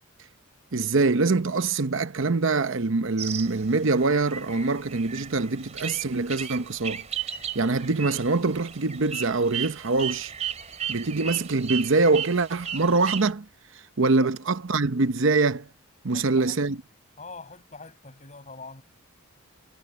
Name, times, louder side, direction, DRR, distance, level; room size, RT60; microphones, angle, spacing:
voice 1, 0.7-7.0 7.5-10.3 10.9-13.5 13.7-15.7 16.0-16.8, right 3 dB, 60° right, 0.8 m, -24 dB
sound 1, 3.2-13.3, right 8 dB, 30° right, 3.2 m, -36 dB
voice 2, 16.1-16.6 17.2-18.8, left 3 dB, 35° left, 7.2 m, -44 dB
head